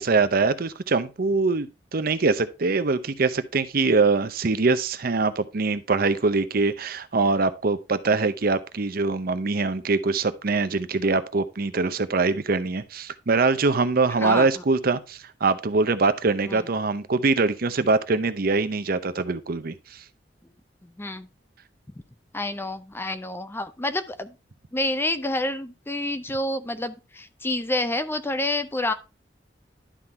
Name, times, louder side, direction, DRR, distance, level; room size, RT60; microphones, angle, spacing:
voice 1, 0.0-19.7, right 3 dB, 55° right, 0.7 m, -23 dB
voice 2, 14.2-14.5 16.4-16.6 21.0-21.3 22.3-24.3 24.7-28.9, left 1 dB, 15° left, 0.5 m, -28 dB
11.5 x 3.8 x 4.3 m
head